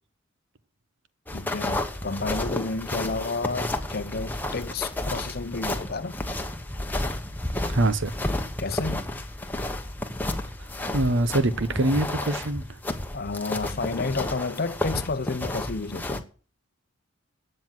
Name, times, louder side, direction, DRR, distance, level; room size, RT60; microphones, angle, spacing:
voice 1, 1.3-6.2 8.6-9.0 13.1-16.2, left 3 dB, 45° left, 0.7 m, -31 dB
sound 1, 1.3-16.2, left 1 dB, 10° left, 1.1 m, -31 dB
voice 2, 7.7-8.1 10.9-12.8, right 2 dB, 60° right, 0.9 m, -24 dB
12.5 x 7.8 x 7.6 m
head